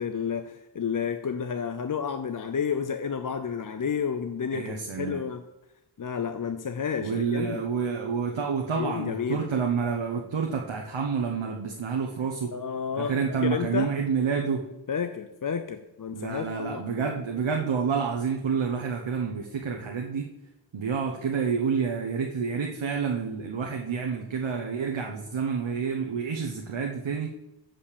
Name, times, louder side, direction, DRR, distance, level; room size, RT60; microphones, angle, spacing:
voice 1, 0.0-5.5 6.0-7.6 8.8-9.5 12.5-13.9 14.9-17.2, left 7 dB, 45° left, 8 dB, 0.5 m, -31 dB
voice 2, 4.5-5.2 7.0-12.5 13.0-14.6 16.1-20.3 20.7-27.3, right 6 dB, 75° right, 1 dB, 1.0 m, -29 dB
7.4 x 5.2 x 6.8 m, 0.91 s
wide cardioid pair, 85°, 47 cm